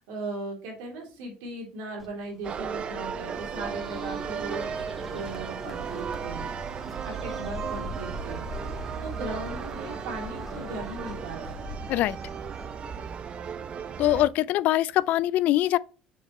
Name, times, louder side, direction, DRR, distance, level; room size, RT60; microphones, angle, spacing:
voice 1, 0.0-4.7 5.0-6.5 7.0-8.4 9.0-11.6, right 2 dB, 90° right, 3.4 m, -38 dB
Bird, 2.0-13.4, equal, 5° right, 2.1 m, -42 dB
sound 1, 2.4-14.3, right 6 dB, 35° right, 0.6 m, -35 dB
voice 2, 14.0-15.8, left 14 dB, 60° left, 0.3 m, -23 dB
6.4 x 5.2 x 3.0 m
cardioid pair, 115°, 3 cm